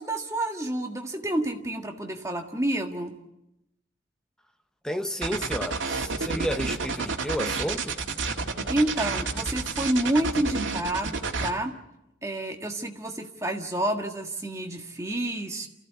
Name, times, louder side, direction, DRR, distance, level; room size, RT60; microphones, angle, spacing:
voice 1, 0.0-3.2 8.7-11.8 12.2-15.7, right 1 dB, 15° right, 1.7 m, -29 dB
voice 2, 4.8-8.0, equal, 5° left, 1.0 m, -31 dB
sound 1, 5.2-11.5, right 4 dB, 90° right, 1.9 m, -30 dB
29.0 x 15.0 x 8.2 m
head